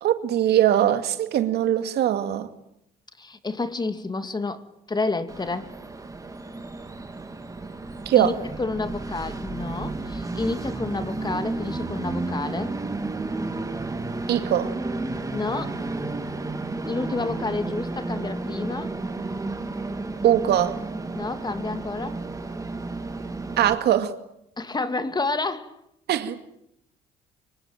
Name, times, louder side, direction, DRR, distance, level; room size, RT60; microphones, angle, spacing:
voice 1, 0.0-2.5 8.1-8.3 14.3-14.7 20.2-20.8 23.6-24.1 26.1-26.4, right 11 dB, 65° right, 2.4 m, -21 dB
voice 2, 3.2-5.7 8.2-8.3 8.6-12.8 15.3-15.8 16.9-19.0 21.1-22.2 24.6-25.7, left 3 dB, 25° left, 2.5 m, -29 dB
Train, 5.3-23.7, right 2 dB, 20° right, 3.4 m, -32 dB
25.0 x 23.0 x 9.1 m
supercardioid pair, 75°, 18 cm